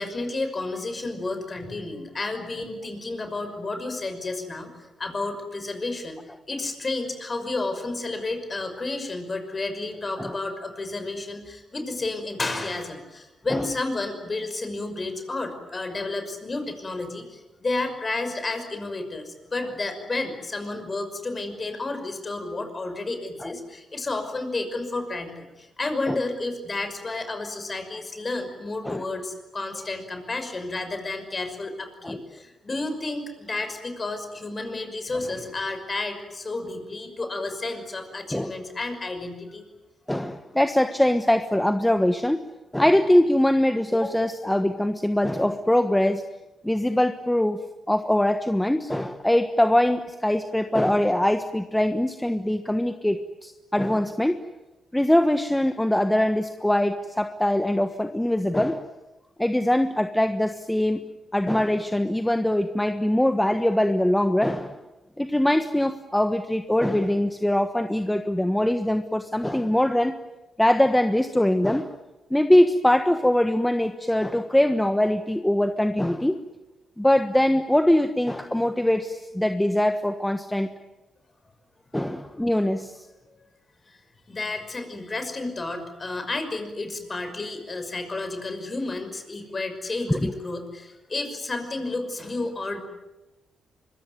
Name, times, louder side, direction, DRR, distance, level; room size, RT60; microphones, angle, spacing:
voice 1, 0.0-6.2 6.5-39.6 83.3-83.4 83.9-84.0 84.3-92.8, left 2 dB, 30° left, 7 dB, 5.9 m, -31 dB
voice 2, 40.1-42.4 42.7-46.2 46.6-47.6 47.9-54.4 54.9-58.9 59.4-61.0 61.3-64.8 65.2-70.1 70.6-71.9 72.3-76.4 77.0-80.7 81.9-83.1 90.1-90.3, left 1 dB, 5° left, 8 dB, 1.3 m, -22 dB
25.0 x 23.0 x 9.5 m, 1.0 s
cardioid pair, 85°, 0 cm